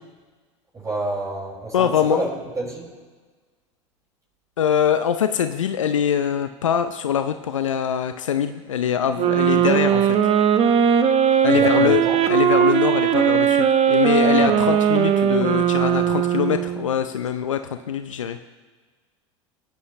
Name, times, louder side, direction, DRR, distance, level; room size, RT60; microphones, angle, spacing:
voice 1, 0.7-2.3 2.6-2.9 11.5-12.2 14.4-14.6, right 2 dB, 20° right, -5 dB, 5.6 m, -28 dB
voice 2, 1.7-2.2 4.6-10.2 11.4-12.0 12.3-18.4, left 8 dB, 85° left, 9 dB, 0.6 m, -23 dB
sound 1, 9.2-16.9, right 8 dB, 40° right, 1.2 m, -18 dB
27.5 x 9.5 x 3.3 m, 1.4 s
hypercardioid pair, 80°, 16 cm